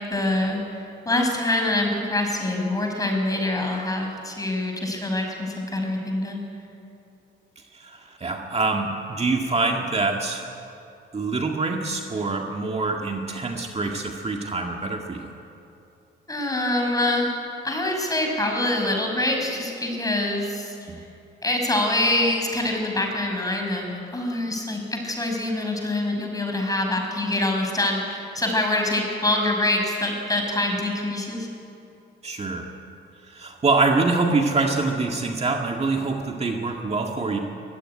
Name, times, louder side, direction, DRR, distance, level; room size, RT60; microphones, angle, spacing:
voice 1, 0.0-6.4 16.3-17.3 17.6-21.0 21.4-31.5, left 1 dB, 15° left, 2 dB, 6.0 m, -25 dB
voice 2, 7.7-10.4 11.1-15.2 32.2-32.7 33.3-37.4, right 3 dB, 30° right, 2 dB, 1.9 m, -25 dB
23.0 x 15.5 x 9.9 m, 2.7 s
cardioid pair, 90°, 20 cm